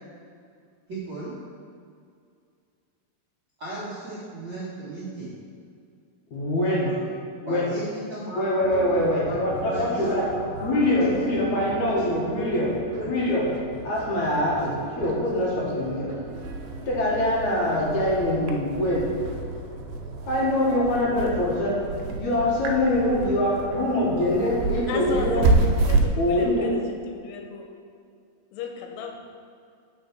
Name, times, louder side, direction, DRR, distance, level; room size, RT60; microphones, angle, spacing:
voice 1, 0.9-1.3 3.6-5.3 7.4-8.8 9.2-12.0 12.3-13.1, right 1 dB, 55° right, -11 dB, 1.4 m, -36 dB
voice 2, 6.3-6.9 7.4-7.7 8.3-10.3 10.6-12.7 13.0-13.4 13.8-16.1 16.9-19.1 20.3-21.8 22.2-25.5 26.2-26.7, left 1 dB, 60° left, -5 dB, 2.3 m, -24 dB
sound 1, 8.6-26.1, right 3 dB, 75° right, 2.4 m, -30 dB
voice 3, 24.9-25.5 25.9-26.8 27.1-27.7 28.5-29.1, left 5 dB, 85° left, 2 dB, 3.0 m, -34 dB
8.2 x 4.5 x 6.0 m, 2.3 s
omnidirectional pair, 4.8 m